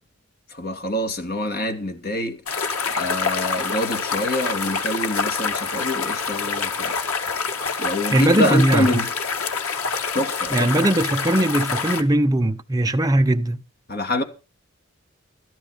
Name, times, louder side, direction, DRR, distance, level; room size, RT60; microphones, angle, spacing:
voice 1, 0.5-2.4 2.9-6.9 7.8-9.1 10.1-10.7 13.9-14.2, left 1 dB, 45° left, 2.4 m, -25 dB
sound 1, 2.5-12.0, left 5 dB, 85° left, 1.8 m, -26 dB
voice 2, 8.1-8.9 10.5-13.6, right 1 dB, 15° right, 0.8 m, -19 dB
13.5 x 12.5 x 5.1 m
head